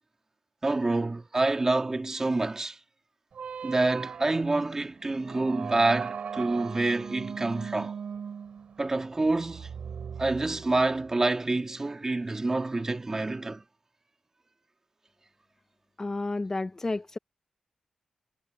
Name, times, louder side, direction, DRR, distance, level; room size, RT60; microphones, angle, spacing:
voice 1, 0.6-2.8 3.6-7.9 8.8-9.7 10.2-13.6, right 2 dB, 25° right, 2.5 m, -27 dB
sound 1, 3.3-11.1, right 7 dB, 65° right, 7.9 m, -39 dB
voice 2, 16.0-17.2, left 2 dB, 25° left, 0.6 m, -31 dB
wide cardioid pair, 105°, 2 cm